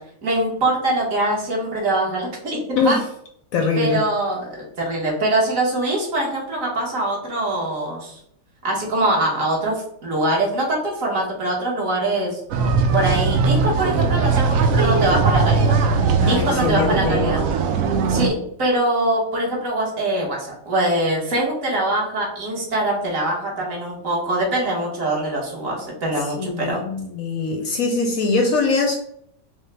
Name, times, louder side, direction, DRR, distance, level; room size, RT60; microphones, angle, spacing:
voice 1, 0.2-2.6 2.8-3.0 3.7-8.2 8.6-12.4 12.9-15.8 16.3-17.4 18.1-26.8, right 1 dB, 50° right, -3 dB, 1.5 m, -23 dB
voice 2, 3.5-4.0 16.2-17.3 26.4-28.9, left 3 dB, 70° left, 3 dB, 0.8 m, -22 dB
sound 1, 12.5-18.3, right 4 dB, 75° right, 0.8 m, -19 dB
5.3 x 2.1 x 3.2 m, 0.70 s
omnidirectional pair, 1.9 m